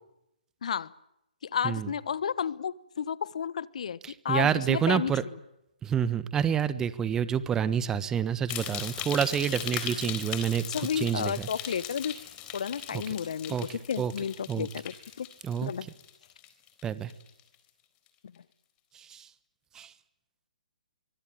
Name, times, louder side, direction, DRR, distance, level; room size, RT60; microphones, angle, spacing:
voice 1, 0.6-0.9 1.4-4.0 4.2-5.1 10.7-12.2 12.5-15.3 15.6-15.9, left 7 dB, 55° left, 1.2 m, -32 dB
voice 2, 4.0-5.2 5.8-10.6 11.0-11.5 13.5-13.7 14.0-14.1 14.5-14.7 15.4-15.7 16.8-17.1 19.1-19.3 19.7-19.9, right 8 dB, 15° right, 1.3 m, -28 dB
sound 1, 8.5-16.8 17.1-17.5 18.1-18.2, left 11 dB, 25° left, 3.9 m, -39 dB
24.0 x 24.0 x 9.2 m
figure-of-eight pair, 135°, 4 cm